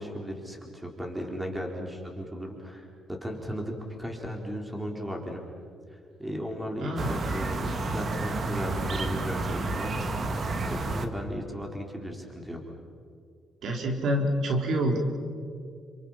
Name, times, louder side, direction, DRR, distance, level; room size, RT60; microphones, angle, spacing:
voice 1, 0.0-5.4 5.9-12.6, equal, 5° right, 1 dB, 4.6 m, -36 dB
voice 2, 6.8-7.2 13.6-15.0, right 1 dB, 70° right, 2 dB, 4.2 m, -27 dB
sound 1, 7.0-11.0, right 2 dB, 45° right, 2.3 m, -30 dB
30.0 x 27.0 x 5.9 m, 2.3 s
cardioid pair, 90°, 0 cm